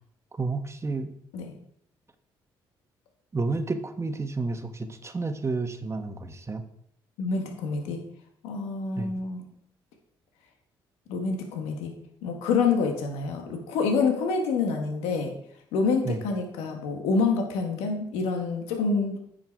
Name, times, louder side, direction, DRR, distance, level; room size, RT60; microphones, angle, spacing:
voice 1, 0.3-1.1 3.3-6.6 9.0-9.1 16.0-16.2, right 3 dB, 25° right, 8 dB, 1.2 m, -30 dB
voice 2, 7.2-8.0 8.4-9.5 11.1-11.9 12.2-15.3 15.7-19.2, left 4 dB, 85° left, 3 dB, 1.4 m, -27 dB
9.1 x 5.5 x 4.5 m, 0.71 s
supercardioid pair, 60°, 10 cm